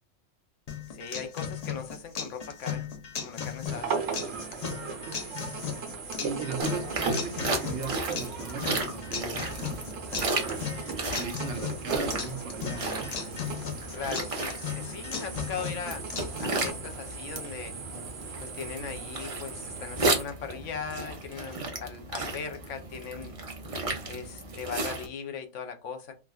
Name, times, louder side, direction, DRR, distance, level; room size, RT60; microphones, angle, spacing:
sound 1, 0.7-16.7, left 7 dB, 55° left, 0.4 m, -37 dB
voice 1, 0.9-2.9 3.1-3.9 13.9-16.0 16.4-17.8 18.4-23.3 24.1-26.1, left 6 dB, 75° left, 6 dB, 0.9 m, -39 dB
sound 2, 3.7-20.2, right 5 dB, 85° right, 1.2 m, -38 dB
voice 2, 6.2-9.8 10.9-13.1, right 5 dB, 65° right, 5 dB, 0.9 m, -38 dB
sound 3, 6.6-25.1, right 2 dB, 40° right, 0.5 m, -34 dB
3.5 x 2.2 x 2.3 m, 0.28 s
omnidirectional pair, 1.3 m